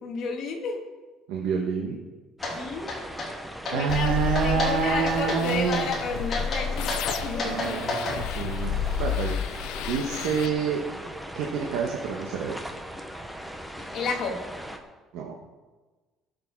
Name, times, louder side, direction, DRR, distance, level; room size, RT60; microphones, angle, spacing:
voice 1, 0.0-0.8 2.5-2.9 3.7-4.1 4.4-7.0 7.2-8.0 13.8-14.4, left 4 dB, 40° left, 1 dB, 1.9 m, -31 dB
voice 2, 1.3-2.0 3.7-5.9 7.4-8.7 9.0-10.8 11.3-12.6 15.1-15.4, right 6 dB, 80° right, 0 dB, 1.3 m, -28 dB
sound 1, 2.4-2.5 2.9-3.3 3.6-4.0 4.3-4.7 5.1-5.4 5.7-6.0 6.3-8.2, left 2 dB, 25° left, 2.8 m, -30 dB
sound 2, 2.4-14.8, equal, ahead, 0.8 m, -39 dB
sound 3, 3.9-10.5, left 8 dB, 75° left, 0.5 m, -31 dB
18.5 x 6.8 x 4.7 m, 1.3 s
cardioid pair, 175°, 0 cm